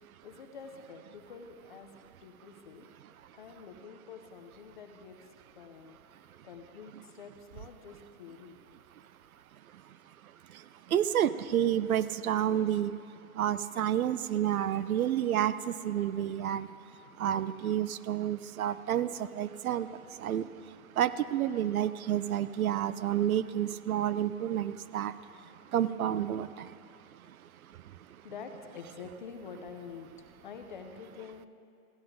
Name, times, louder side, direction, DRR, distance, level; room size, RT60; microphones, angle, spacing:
voice 1, 0.2-1.9 2.2-2.9 3.3-6.2 6.4-8.6 28.2-31.5, left 5 dB, 35° left, 5 dB, 0.7 m, -47 dB
voice 2, 10.9-12.9 13.4-16.7 17.2-19.9 20.2-20.4 21.0-25.1 25.7-26.7, right 11 dB, 70° right, 15 dB, 0.6 m, -29 dB
15.0 x 9.4 x 3.8 m, 2.4 s
hypercardioid pair, 165°, 44 cm